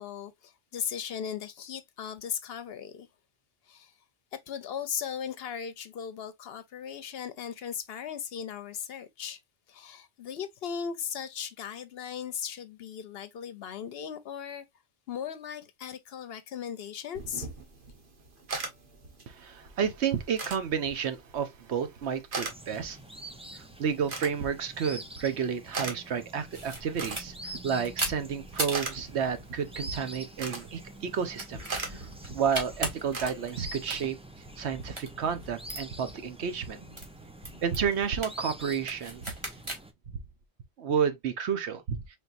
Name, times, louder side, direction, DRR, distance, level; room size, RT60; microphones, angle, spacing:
voice 1, 0.0-3.1 3.7-3.9 4.3-9.4 9.7-14.6 15.1-17.5, left 8 dB, 65° left, 0.7 m, -37 dB
sound 1, 17.1-34.1, right 4 dB, 50° right, 1.2 m, -42 dB
voice 2, 19.3-23.0 23.5-32.1 32.3-34.2 34.6-36.8 37.6-39.2 40.8-42.0, right 7 dB, 70° right, 1.0 m, -31 dB
sound 2, 22.5-39.9, right 1 dB, 10° right, 0.4 m, -47 dB
sound 3, 26.5-39.8, right 1 dB, 25° right, 1.5 m, -40 dB
4.4 x 3.5 x 2.4 m
omnidirectional pair, 1.2 m